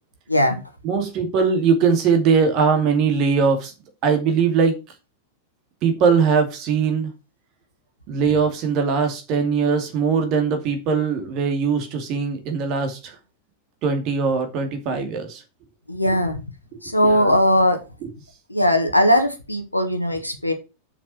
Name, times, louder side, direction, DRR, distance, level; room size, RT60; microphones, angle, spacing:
voice 1, 0.3-0.6 15.9-16.4 16.8-17.8 18.5-20.5, equal, 85° left, 1.4 m, -19 dB
voice 2, 0.8-3.7 4.0-4.8 5.8-7.1 8.1-13.2 13.8-15.4 16.7-17.4, right 5 dB, 40° right, 2.4 m, -21 dB
7.1 x 5.9 x 6.2 m
figure-of-eight pair, 90°, 0 cm